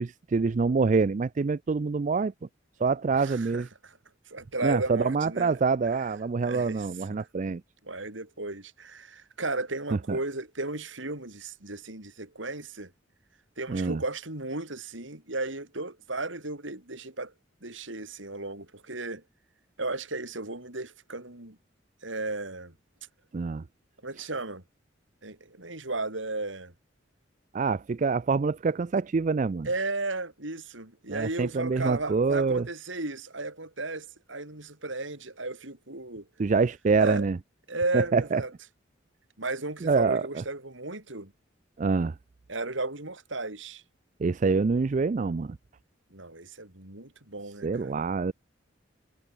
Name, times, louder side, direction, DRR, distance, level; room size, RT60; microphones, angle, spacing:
voice 1, 0.0-2.3 2.8-3.7 4.6-7.6 10.1-10.2 13.7-14.0 23.3-23.6 27.5-29.7 31.1-32.7 36.4-37.4 37.9-38.4 39.8-40.2 41.8-42.1 44.2-45.6 47.6-48.3, right 4 dB, 40° right, 0.4 m, -26 dB
voice 2, 3.1-4.0 4.3-5.6 6.4-6.9 7.8-12.9 13.6-17.3 17.6-19.2 19.8-21.6 22.0-22.7 24.0-24.6 25.2-26.7 29.6-36.3 37.0-37.3 37.7-38.5 39.4-41.3 42.5-43.8 46.1-48.0, right 2 dB, 85° right, 5.6 m, -34 dB
head